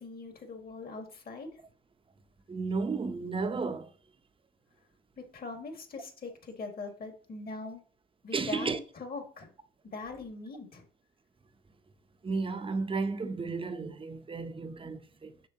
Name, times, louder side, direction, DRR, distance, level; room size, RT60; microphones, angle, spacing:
voice 1, 0.0-1.5 5.2-7.8 8.2-9.5 9.9-10.9, left 3 dB, 50° left, 1.9 m, -41 dB
voice 2, 2.5-3.9 8.3-8.8 12.2-15.3, right 4 dB, 25° right, 0.7 m, -33 dB
6.7 x 6.0 x 2.8 m
cardioid pair, 90°, 20 cm